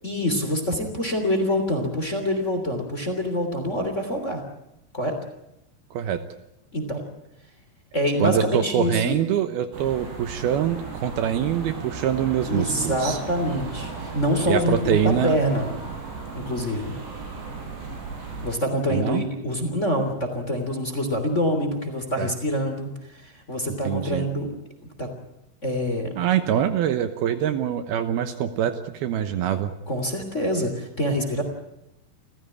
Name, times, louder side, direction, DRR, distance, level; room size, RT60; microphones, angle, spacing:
voice 1, 0.0-4.4 4.9-5.2 6.7-7.0 7.9-9.1 12.5-15.7 16.3-16.9 18.4-24.5 25.0-25.1 25.6-26.1 29.9-31.4, equal, 20° left, 6 dB, 2.8 m, -26 dB
voice 2, 5.9-6.2 8.2-13.2 14.5-15.4 18.9-19.2 22.2-22.3 23.8-24.3 26.2-29.7, right 9 dB, 70° right, 9 dB, 2.7 m, -24 dB
sound 1, 9.7-18.5, right 4 dB, 85° right, 5.8 m, -35 dB
29.0 x 15.0 x 9.7 m, 0.85 s
omnidirectional pair, 4.9 m